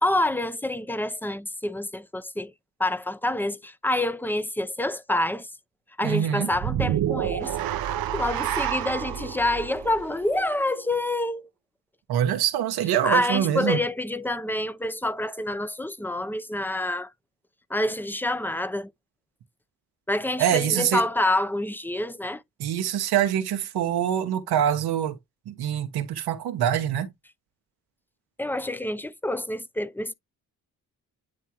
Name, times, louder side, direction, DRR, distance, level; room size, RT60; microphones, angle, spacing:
voice 1, 0.0-2.5 2.8-5.5 6.0-7.5 8.1-11.5 13.0-17.1 17.7-18.9 20.1-22.4 28.4-30.1, left 1 dB, 5° left, 0.6 m, -27 dB
voice 2, 6.0-6.5 12.1-13.8 20.4-21.0 22.6-25.2 25.5-27.1, right 10 dB, 90° right, 1.3 m, -24 dB
sound 1, 6.5-10.9, right 11 dB, 70° right, 0.8 m, -29 dB
10.0 x 3.5 x 2.9 m
cardioid pair, 85°, 37 cm